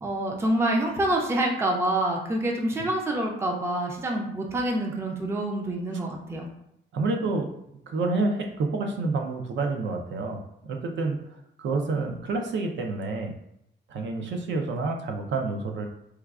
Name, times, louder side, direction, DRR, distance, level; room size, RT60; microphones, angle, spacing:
voice 1, 0.0-6.5, right 1 dB, 15° right, 1 dB, 0.4 m, -27 dB
voice 2, 6.9-7.5 7.9-11.2 11.6-13.3 13.9-15.9, right 3 dB, 75° right, 3 dB, 0.5 m, -28 dB
4.5 x 2.3 x 2.3 m, 0.79 s
wide cardioid pair, 175°, 19 cm